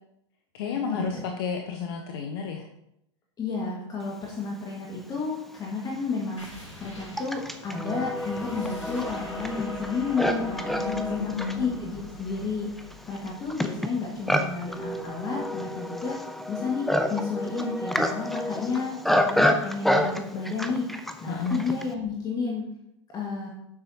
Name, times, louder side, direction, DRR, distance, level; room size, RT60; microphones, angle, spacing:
voice 1, 0.5-2.6 10.7-11.7 21.3-21.6, left 6 dB, 50° left, 3 dB, 1.1 m, -31 dB
voice 2, 3.4-20.9 21.2-22.7 23.1-23.5, left 4 dB, 25° left, -2 dB, 2.0 m, -31 dB
Livestock farm animals working animals, 5.2-5.3 6.0-21.9, left 1 dB, ahead, 0.7 m, -29 dB
sound 1, 6.4-15.6, left 1 dB, 85° left, 3.3 m, -45 dB
12.5 x 7.2 x 2.9 m, 0.78 s
figure-of-eight pair, 90°, 16 cm